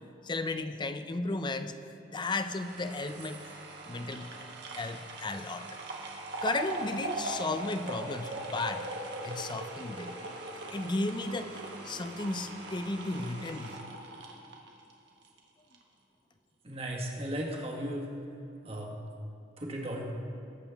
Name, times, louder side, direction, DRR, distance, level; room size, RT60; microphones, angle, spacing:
voice 1, 0.2-1.8 2.1-3.4 3.9-4.3 4.7-5.7 6.4-8.9 9.2-10.2 10.7-13.8, left 2 dB, 25° left, 9 dB, 0.5 m, -34 dB
sound 1, 2.2-15.4 15.7-15.8, right 2 dB, 65° right, 1.5 m, -40 dB
voice 2, 16.6-18.1 18.6-18.9 19.6-20.1, right 1 dB, 30° right, 0 dB, 1.6 m, -36 dB
19.5 x 7.5 x 3.5 m, 2.8 s
head